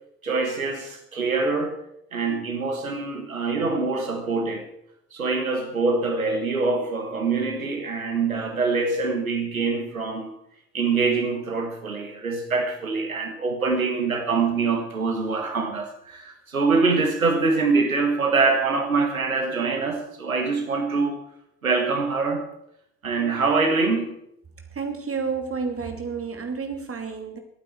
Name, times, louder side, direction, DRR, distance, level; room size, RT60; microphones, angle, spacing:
voice 1, 0.2-1.8 2.1-4.6 5.1-10.3 10.7-21.2 21.6-22.4 23.0-24.1, right 4 dB, 90° right, 1.5 m, -24 dB
voice 2, 24.7-27.4, right 5 dB, 35° right, 2.6 m, -30 dB
24.0 x 8.9 x 4.6 m
figure-of-eight pair, 50°, 40 cm